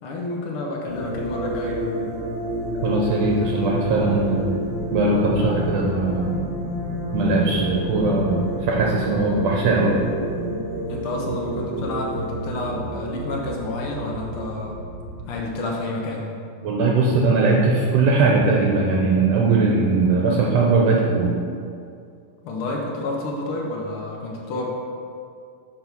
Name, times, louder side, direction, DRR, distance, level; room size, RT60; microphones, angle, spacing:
voice 1, 0.0-1.8 10.9-14.8 15.3-16.3 20.0-20.1 22.4-24.7, left 2 dB, 65° left, -1 dB, 1.4 m, -29 dB
sound 1, 0.9-15.3, equal, 10° right, 0.9 m, -29 dB
voice 2, 2.8-4.5 4.9-6.4 7.1-10.0 16.6-21.4, right 3 dB, 75° right, -2 dB, 1.8 m, -20 dB
6.8 x 4.1 x 5.9 m, 2.4 s
omnidirectional pair, 3.3 m